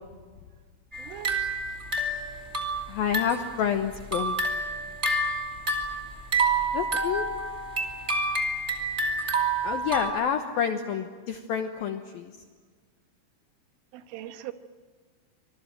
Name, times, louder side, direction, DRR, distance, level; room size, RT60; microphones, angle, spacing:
sound 1, 0.9-3.6 3.9-10.1, right 2 dB, 20° right, 1.8 m, -28 dB
voice 1, 1.0-1.5 13.9-14.5, right 12 dB, 75° right, 3.7 m, -40 dB
voice 2, 2.9-4.4 6.7-7.2 9.6-12.3, left 8 dB, 85° left, 2.1 m, -28 dB
25.5 x 22.5 x 9.1 m
omnidirectional pair, 5.9 m